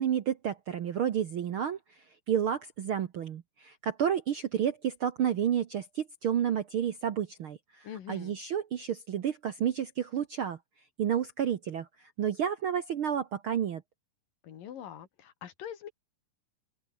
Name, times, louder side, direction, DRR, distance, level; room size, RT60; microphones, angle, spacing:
voice 1, 0.0-1.8 2.3-10.6 11.0-13.8, right 9 dB, 65° right, 1.4 m, -30 dB
voice 2, 7.8-8.4 14.4-15.9, left 9 dB, 85° left, 3.9 m, -43 dB
open air
omnidirectional pair, 3.8 m